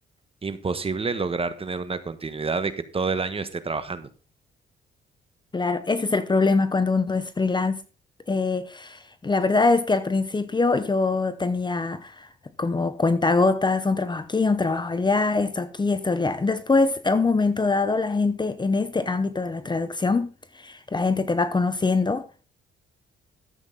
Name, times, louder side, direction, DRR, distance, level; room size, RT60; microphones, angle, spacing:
voice 1, 0.4-4.1, right 4 dB, 30° right, 1.4 m, -28 dB
voice 2, 5.5-7.8 8.3-12.3 12.6-20.3 20.5-22.2, left 3 dB, 20° left, 0.9 m, -23 dB
13.0 x 8.1 x 4.1 m
cardioid pair, 90°, 20 cm